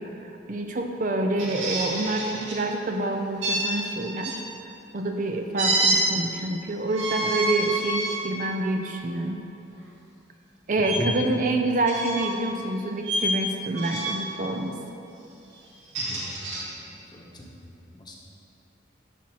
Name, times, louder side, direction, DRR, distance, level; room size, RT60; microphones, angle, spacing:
voice 1, 0.0-4.4 4.9-9.5 10.7-14.8, right 2 dB, 40° right, 4 dB, 0.5 m, -27 dB
sound 1, 1.4-2.6 3.4-4.4 5.6-6.0 6.8-8.2 8.8-9.0 10.8-11.0 11.8-12.4 13.0-13.3 13.7-14.3 15.7-16.6, right 2 dB, 75° right, 1.8 m, -28 dB
voice 2, 16.0-17.5 17.8-18.1, left 1 dB, 20° left, -2 dB, 1.1 m, -38 dB
11.5 x 4.2 x 6.2 m, 2.7 s
head